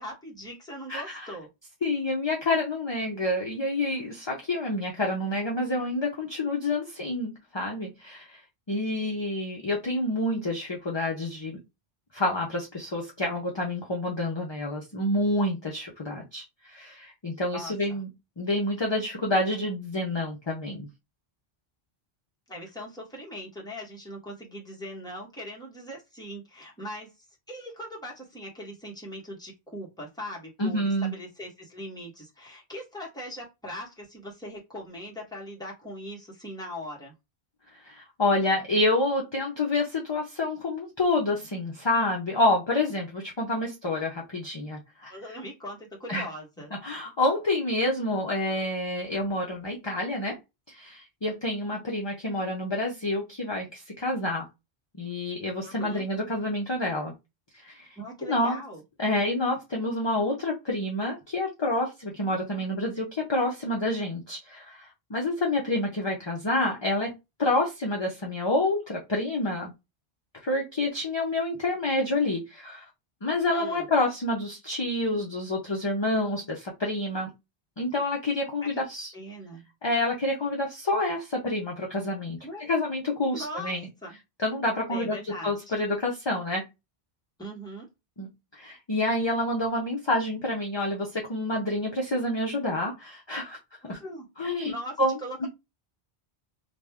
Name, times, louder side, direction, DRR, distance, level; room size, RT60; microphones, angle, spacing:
voice 1, 0.0-1.5 17.5-18.0 22.5-37.1 45.1-46.7 55.6-56.0 58.0-58.8 73.5-73.9 78.6-78.8 79.1-79.6 82.4-82.7 83.3-83.8 84.0-84.2 84.9-85.7 87.4-87.9 93.8-94.3 94.6-95.5, equal, 5° left, -4 dB, 1.2 m, -40 dB
voice 2, 0.9-1.3 1.8-8.4 8.7-11.6 12.1-18.1 18.4-20.9 30.6-31.1 37.8-45.1 46.1-46.3 46.8-50.4 50.7-54.4 55.0-57.1 57.5-57.9 58.3-58.6 59.0-67.1 67.4-69.7 70.4-72.8 73.2-77.3 77.8-79.1 79.8-82.4 82.7-83.9 84.4-86.6 88.2-88.3 88.5-93.6 93.9-94.0 94.4-95.5, left 2 dB, 30° left, -1 dB, 0.7 m, -28 dB
2.9 x 2.6 x 3.4 m, 0.23 s
omnidirectional pair, 1.0 m